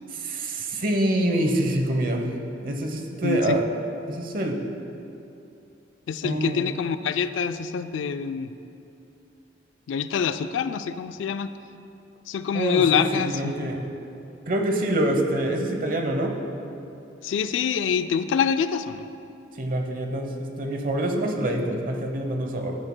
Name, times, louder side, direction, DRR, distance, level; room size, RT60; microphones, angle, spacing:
voice 1, 0.2-2.3 2.6-3.6 4.1-4.6 6.2-6.7 12.5-13.8 14.5-16.3 19.6-22.8, right 1 dB, 45° right, 3 dB, 0.9 m, -26 dB
voice 2, 3.2-3.6 6.1-8.5 9.9-11.5 12.3-13.6 17.2-19.1, left 7 dB, 75° left, 11 dB, 0.3 m, -25 dB
15.5 x 8.8 x 2.2 m, 2.8 s
head